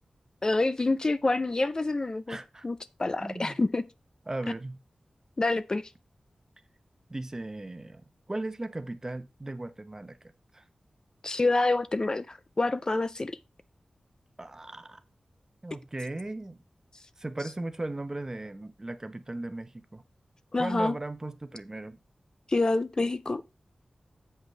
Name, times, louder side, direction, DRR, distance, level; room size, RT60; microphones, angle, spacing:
voice 1, 0.4-2.4 2.6-3.8 5.4-5.8 11.2-13.4 20.5-20.9 22.5-23.5, left 2 dB, 35° left, 0.4 m, -27 dB
voice 2, 2.3-2.7 3.2-3.6 4.3-4.8 7.1-10.2 10.5-10.6 14.4-15.0 15.6-16.6 17.2-20.0 20.6-22.0, right 2 dB, 25° right, 0.9 m, -37 dB
7.9 x 7.9 x 3.2 m
wide cardioid pair, 100°, 2 cm